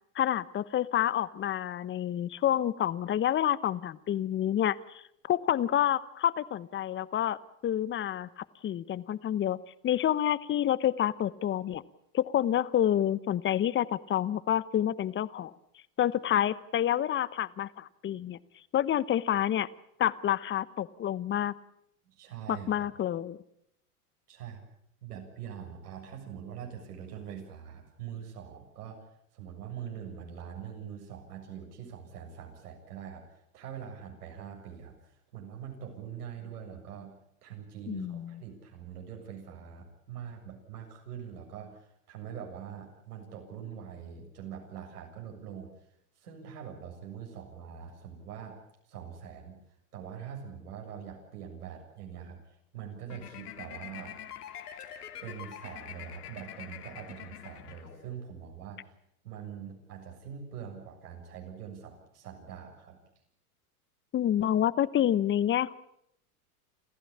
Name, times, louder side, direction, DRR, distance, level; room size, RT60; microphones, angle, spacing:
voice 1, 0.1-5.0 5.3-7.4 7.6-9.6 9.8-11.8 12.1-15.5 16.0-18.4 18.7-19.7 20.0-21.5 22.5-23.4 37.9-38.3 64.1-65.7, left 11 dB, 25° left, 18 dB, 0.9 m, -28 dB
voice 2, 22.1-22.9 24.3-24.6 25.0-29.0 29.3-33.2 33.5-35.0 35.3-37.2 37.4-45.7 46.2-48.6 48.9-49.6 49.9-54.2 55.2-58.9 59.2-63.0, right 8 dB, 80° right, 2 dB, 7.3 m, -43 dB
sound 1, 53.1-58.3, left 10 dB, 80° left, 2.7 m, -45 dB
27.5 x 14.5 x 8.6 m, 0.75 s
hypercardioid pair, 100°, 46 cm